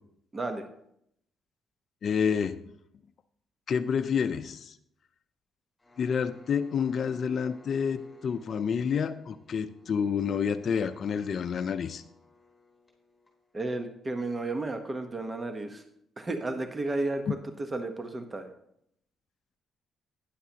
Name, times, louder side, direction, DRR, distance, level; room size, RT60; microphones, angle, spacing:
voice 1, 0.3-0.7 13.5-15.8 16.2-18.5, right 2 dB, 25° right, 6 dB, 1.0 m, -33 dB
voice 2, 2.0-2.6 3.7-4.8 6.0-12.0 17.3-17.4, left 7 dB, 55° left, 8 dB, 0.5 m, -29 dB
sound 1, 5.8-13.6, left 3 dB, 15° left, 3.6 m, -58 dB
12.0 x 10.0 x 2.8 m, 0.73 s
cardioid pair, 90°, 0 cm